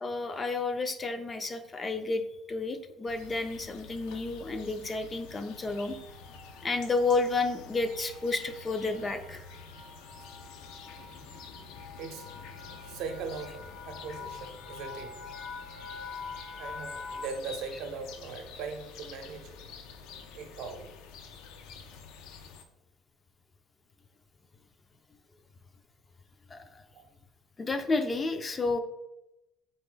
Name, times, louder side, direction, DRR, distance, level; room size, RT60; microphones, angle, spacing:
voice 1, 0.0-6.0 6.6-9.5 26.5-26.8 27.6-28.8, left 3 dB, 20° left, 8 dB, 0.3 m, -31 dB
sound 1, 3.1-22.6, left 5 dB, 85° left, 0.5 m, -48 dB
sound 2, 5.4-17.5, left 4 dB, 65° left, 0.8 m, -46 dB
voice 2, 12.0-12.3 12.7-15.2 16.6-19.6 20.3-20.9 26.9-27.1, right 5 dB, 70° right, 5 dB, 0.6 m, -40 dB
3.9 x 3.2 x 3.8 m, 0.89 s
cardioid pair, 145°, 0 cm